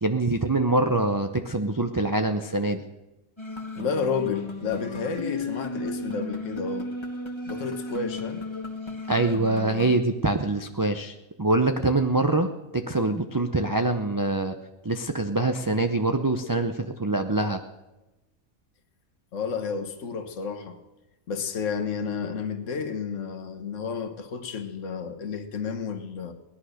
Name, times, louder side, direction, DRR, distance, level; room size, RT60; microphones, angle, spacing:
voice 1, 0.0-2.8 9.1-14.6 14.8-17.6, right 2 dB, 25° right, 5 dB, 0.5 m, -24 dB
sound 1, 3.4-10.0, left 2 dB, 20° left, 1.5 m, -34 dB
voice 2, 3.7-6.9 7.4-8.4 19.3-20.8 21.3-26.3, left 5 dB, 60° left, 7 dB, 1.5 m, -31 dB
17.0 x 11.5 x 6.5 m, 1.0 s
omnidirectional pair, 1.5 m